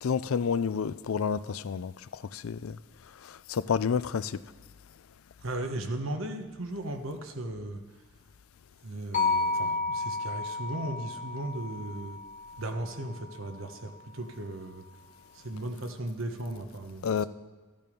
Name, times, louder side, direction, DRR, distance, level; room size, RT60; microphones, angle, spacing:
voice 1, 0.0-1.9 2.3-2.8 3.2-4.4 17.0-17.3, left 6 dB, 90° left, 16 dB, 0.4 m, -29 dB
voice 2, 5.4-7.8 8.8-12.2 12.6-14.8 15.3-17.3, right 1 dB, 70° right, 5 dB, 1.2 m, -36 dB
sound 1, 9.1-13.4, left 3 dB, 35° left, 1.1 m, -32 dB
14.0 x 9.2 x 5.2 m, 1.4 s
head